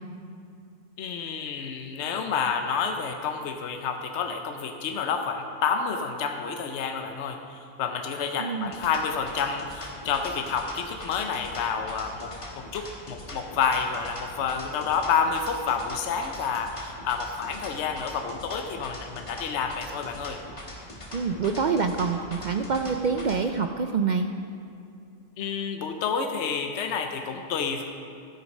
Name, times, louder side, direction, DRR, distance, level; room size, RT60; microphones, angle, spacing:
voice 1, 1.0-20.4 25.4-27.8, left 6 dB, 70° left, 5 dB, 1.0 m, -29 dB
voice 2, 8.4-8.7 21.1-24.3, right 5 dB, 65° right, 6 dB, 0.4 m, -26 dB
sound 1, 8.6-23.4, left 1 dB, 25° left, 1.5 m, -42 dB
13.0 x 7.9 x 5.3 m, 2.5 s
omnidirectional pair, 1.2 m